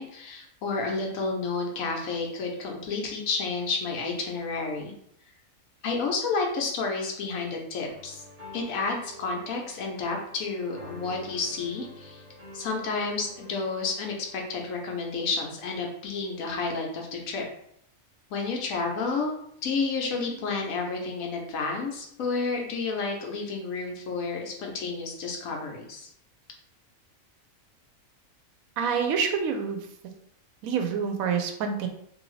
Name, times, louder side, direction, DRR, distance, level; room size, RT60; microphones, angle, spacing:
voice 1, 0.0-4.9 5.8-8.2 8.5-12.2 12.5-17.5 18.3-19.3 19.6-26.1, left 4 dB, 80° left, 1 dB, 1.1 m, -30 dB
sound 1, 7.9-14.5, left 1 dB, 30° right, 1.1 m, -48 dB
voice 2, 28.8-30.1 30.6-31.9, right 6 dB, 85° right, 5 dB, 1.0 m, -28 dB
2.8 x 2.7 x 3.1 m, 0.69 s
omnidirectional pair, 1.4 m